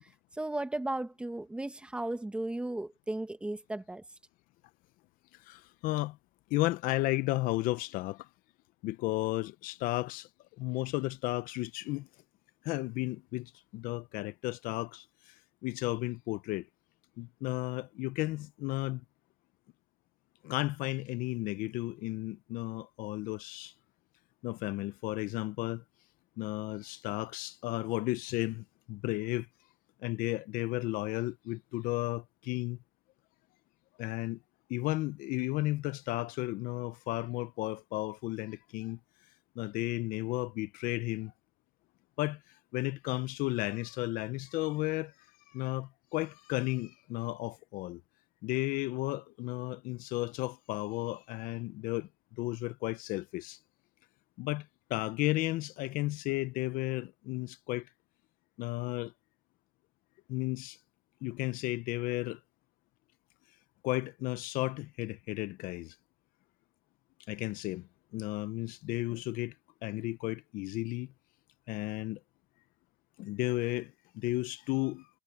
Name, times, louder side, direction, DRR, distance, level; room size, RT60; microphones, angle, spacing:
voice 1, 0.3-4.0, right 1 dB, 5° right, 1.4 m, -35 dB
voice 2, 5.3-6.2 6.5-8.3 8.8-10.3 10.6-12.1 12.6-16.7 17.2-19.0 20.4-23.7 24.4-25.8 26.4-29.5 30.0-32.8 34.0-34.4 34.7-39.0 39.6-41.3 42.2-42.4 42.7-45.1 45.5-48.0 48.4-52.1 52.4-53.6 54.4-57.9 58.6-59.1 60.3-60.8 61.2-62.4 63.8-66.0 67.3-69.5 69.8-71.1 71.7-72.2 73.2-75.1, left 19 dB, 55° left, 0.7 m, -34 dB
cardioid pair, 145°, 17 cm